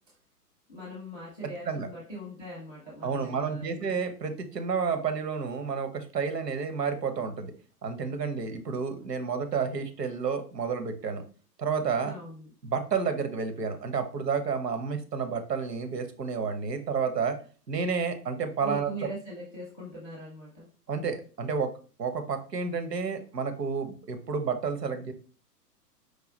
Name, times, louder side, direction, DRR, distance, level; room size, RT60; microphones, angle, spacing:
voice 1, 0.7-4.0 12.0-12.5 18.6-20.7, right 1 dB, 5° right, -4 dB, 0.4 m, -41 dB
voice 2, 1.4-1.9 3.0-7.5 7.8-11.2 11.6-12.1 12.6-17.4 17.7-18.9 20.9-21.7 22.0-25.1, right 5 dB, 75° right, 8 dB, 0.9 m, -30 dB
4.8 x 2.3 x 3.8 m, 0.40 s
figure-of-eight pair, 115°, 49 cm